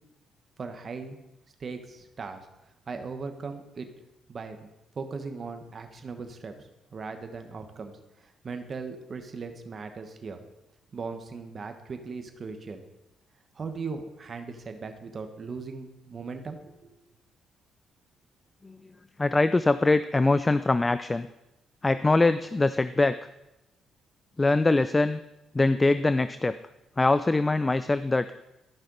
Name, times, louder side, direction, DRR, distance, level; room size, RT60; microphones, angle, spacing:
voice 1, 0.6-1.2 1.6-2.5 2.9-3.9 4.3-4.7 4.9-6.5 6.9-10.4 10.9-12.8 13.6-17.0, right 4 dB, 40° right, 6 dB, 1.2 m, -38 dB
voice 2, 19.2-21.3 21.8-23.2 24.4-25.2 25.5-26.6 27.0-28.3, left 2 dB, 20° left, 13 dB, 0.3 m, -23 dB
13.0 x 5.7 x 3.9 m, 0.93 s
cardioid pair, 90°, 0 cm